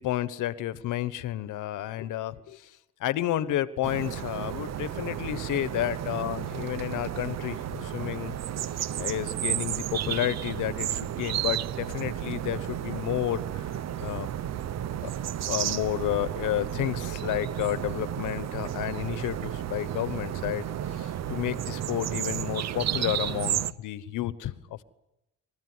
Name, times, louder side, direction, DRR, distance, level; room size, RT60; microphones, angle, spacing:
voice 1, 0.0-2.6 3.0-8.3 9.0-13.6 14.0-14.3 15.0-15.1 15.5-24.8, left 13 dB, 85° left, 14 dB, 1.2 m, -31 dB
sound 1, 3.8-23.7, right 11 dB, 60° right, 0.8 m, -32 dB
28.0 x 14.5 x 9.7 m, 0.92 s
cardioid pair, 90°, 30 cm